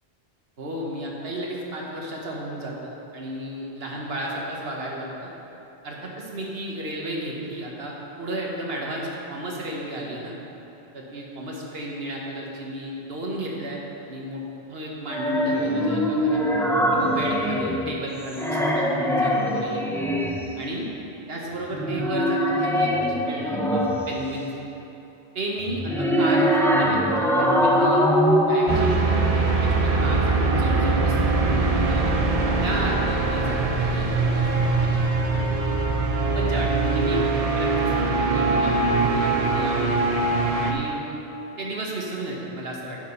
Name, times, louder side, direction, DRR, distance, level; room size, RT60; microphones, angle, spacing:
voice 1, 0.6-5.3 5.8-10.4 10.9-13.8 14.1-14.4 14.7-16.4 16.9-20.0 20.6-20.9 21.3-24.5 25.3-28.0 28.5-28.9 29.3-32.1 32.6-35.0 35.3-35.4 36.3-40.1 40.6-41.2 41.6-43.0, right 1 dB, 70° right, -2 dB, 1.4 m, -33 dB
sound 1, 15.1-18.0 18.3-20.6 21.7-24.2 25.7-29.0, equal, 5° left, 0.3 m, -22 dB
sound 2, 28.7-40.7, right 3 dB, 40° right, 0.7 m, -22 dB
9.0 x 4.9 x 5.6 m, 3.0 s
omnidirectional pair, 1.1 m